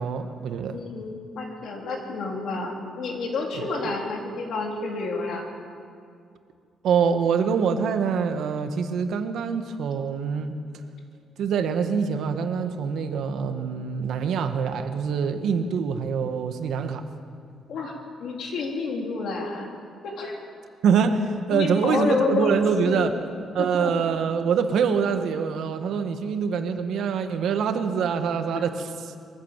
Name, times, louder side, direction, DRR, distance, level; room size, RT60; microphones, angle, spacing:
voice 1, 0.0-0.8 3.6-3.7 6.8-10.5 11.4-17.1 20.8-23.1 23.5-28.7, right 6 dB, 65° right, 7 dB, 1.5 m, -25 dB
voice 2, 0.7-5.4 17.7-17.9 18.2-19.7 20.0-20.4 21.5-22.6 22.8-23.2 23.6-23.9 28.5-28.6, left 3 dB, 60° left, 0 dB, 3.6 m, -29 dB
23.5 x 15.0 x 7.4 m, 2.3 s
cardioid pair, 160°, 0 cm